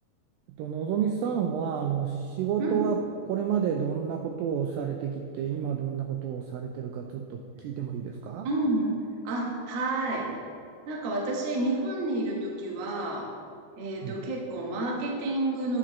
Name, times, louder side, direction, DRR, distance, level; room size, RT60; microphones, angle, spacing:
voice 1, 0.6-3.0 3.3-8.5 14.0-14.2, right 8 dB, 90° right, 3 dB, 2.0 m, -30 dB
voice 2, 8.4-8.9 9.2-10.3 10.9-13.3 13.8-15.8, right 2 dB, 75° right, -1 dB, 1.4 m, -29 dB
10.0 x 8.7 x 3.1 m, 2.4 s
omnidirectional pair, 4.6 m